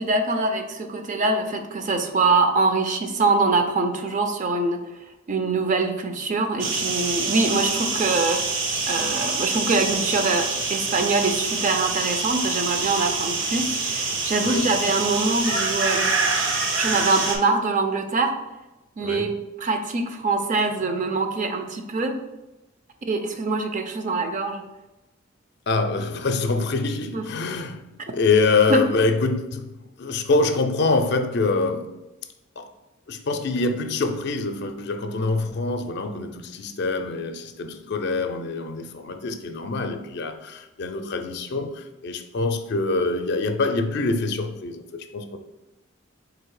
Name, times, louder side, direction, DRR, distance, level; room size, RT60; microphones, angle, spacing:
voice 1, 0.0-4.8 5.3-8.4 8.9-16.1 16.7-18.3 19.0-22.1 23.1-24.6 27.1-27.2 28.7-28.8, right 3 dB, 40° right, 0.5 m, -24 dB
sound 1, 6.6-17.4, right 3 dB, 75° right, 0.8 m, -26 dB
voice 2, 25.7-27.9 28.1-29.7 30.0-32.0 32.6-32.7 33.1-45.4, left 3 dB, 60° left, 0.4 m, -25 dB
3.9 x 2.7 x 4.7 m
head